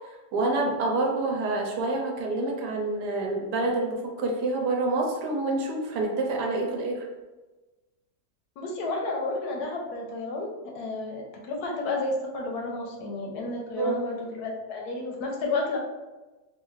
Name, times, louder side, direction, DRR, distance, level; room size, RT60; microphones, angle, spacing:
voice 1, 0.3-7.0 13.8-14.0, right 2 dB, 75° right, 0 dB, 1.2 m, -27 dB
voice 2, 8.6-10.5 10.7-15.8, left 2 dB, 75° left, 0 dB, 1.0 m, -31 dB
3.2 x 2.4 x 3.1 m, 1.2 s
omnidirectional pair, 1.8 m